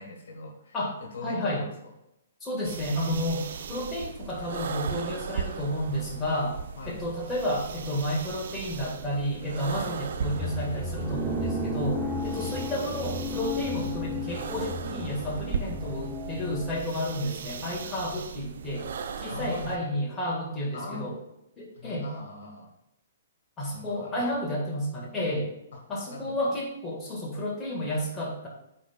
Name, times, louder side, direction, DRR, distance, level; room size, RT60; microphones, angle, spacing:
voice 1, 0.0-1.9 6.8-7.0 9.7-10.0 19.3-20.0 20.7-21.1 21.7-22.7 23.7-24.2 26.1-26.3, left 2 dB, 60° left, 1 dB, 1.6 m, -40 dB
voice 2, 0.7-1.6 2.4-3.4 3.7-6.6 6.9-18.9 19.2-21.1 21.6-22.1 23.6-25.6 25.9-28.5, equal, 15° left, -4 dB, 1.9 m, -31 dB
sound 1, 2.6-19.8, right 6 dB, 55° right, 0.6 m, -38 dB
sound 2, 10.2-16.8, left 1 dB, 5° right, 0.8 m, -33 dB
12.0 x 4.4 x 2.4 m, 0.86 s
figure-of-eight pair, 120°, 0 cm